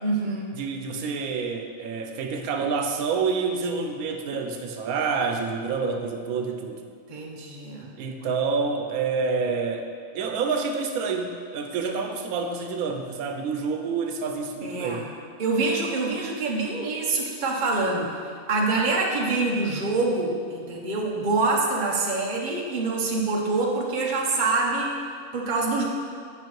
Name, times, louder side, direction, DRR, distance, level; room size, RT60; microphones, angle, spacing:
voice 1, 0.0-0.6 7.1-7.9 14.6-15.1 15.4-18.1 18.5-24.9 25.3-25.8, right 3 dB, 40° right, -1 dB, 0.9 m, -25 dB
voice 2, 0.6-6.8 8.0-15.1, right 5 dB, 90° right, 4 dB, 1.1 m, -28 dB
8.9 x 5.5 x 3.1 m, 2.1 s
omnidirectional pair, 1.5 m